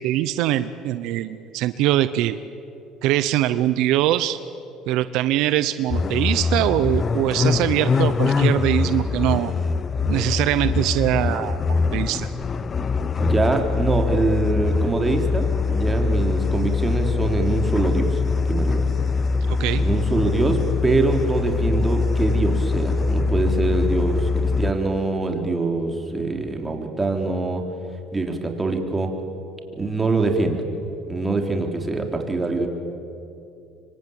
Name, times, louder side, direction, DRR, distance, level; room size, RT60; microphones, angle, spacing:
voice 1, 0.0-2.4 3.0-4.4 4.9-9.5 10.1-11.6 11.9-12.3 19.5-19.8, right 13 dB, 75° right, 13 dB, 0.9 m, -22 dB
sound 1, 5.9-24.7, left 4 dB, 35° left, 0.9 m, -23 dB
voice 2, 13.2-18.9 19.8-27.6 28.1-29.1 29.8-30.6 31.1-32.7, right 3 dB, 15° right, 3 dB, 4.0 m, -24 dB
26.0 x 24.5 x 9.0 m, 2.7 s
supercardioid pair, 100°, 0 cm